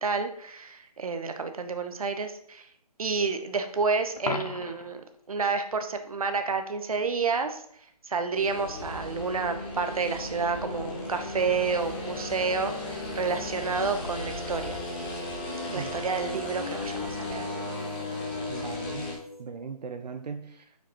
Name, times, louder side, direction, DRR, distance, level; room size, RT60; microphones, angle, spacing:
voice 1, 0.0-2.7 3.0-5.0 5.3-7.6 8.1-14.8 15.7-17.5, right 4 dB, 60° right, 7 dB, 1.0 m, -29 dB
Coin (dropping), 4.2-5.0 11.1-11.3, left 4 dB, 70° left, 0.8 m, -35 dB
sound 1, 8.3-19.1, left 2 dB, 15° left, 1.0 m, -35 dB
sound 2, 11.8-19.4, left 4 dB, 25° right, 0.4 m, -48 dB
voice 2, 18.5-19.1 19.4-20.8, right 5 dB, 85° right, 6 dB, 0.6 m, -38 dB
6.9 x 5.0 x 3.0 m, 0.67 s
hypercardioid pair, 170°, 20 cm